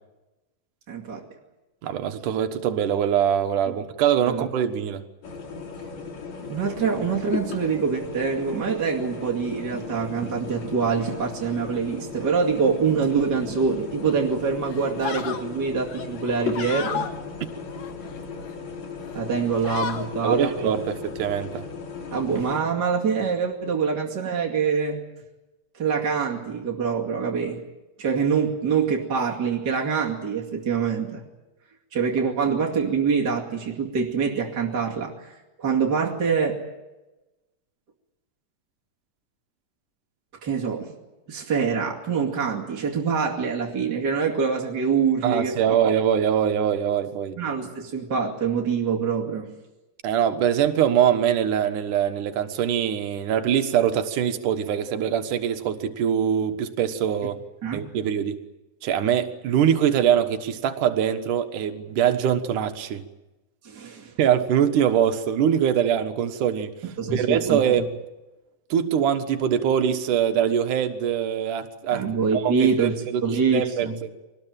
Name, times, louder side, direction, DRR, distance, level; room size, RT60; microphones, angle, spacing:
voice 1, 0.9-1.2 4.2-4.5 6.5-17.1 19.1-20.5 22.1-25.0 25.7-27.6 28.0-31.2 31.9-35.3 35.6-36.6 40.4-40.9 41.3-45.8 47.4-49.5 57.6-57.9 63.6-64.1 66.8-67.6 71.9-74.0, right 5 dB, 35° right, -2 dB, 2.7 m, -25 dB
voice 2, 1.8-5.0 20.2-21.7 45.2-47.4 50.0-57.4 57.7-58.4 58.8-63.0 64.2-66.7 67.1-67.9 68.7-72.0 72.3-73.2 73.5-73.9, right 9 dB, 75° right, 7 dB, 2.9 m, -23 dB
sound 1, 5.2-22.6, left 5 dB, 60° left, 3.9 m, -36 dB
sound 2, 14.0-14.3 14.7-15.4 15.9-17.1 17.7-18.6 19.0-19.2 19.4-20.1, left 7 dB, 85° left, 3.5 m, -33 dB
24.0 x 19.5 x 9.1 m, 1.1 s
omnidirectional pair, 3.8 m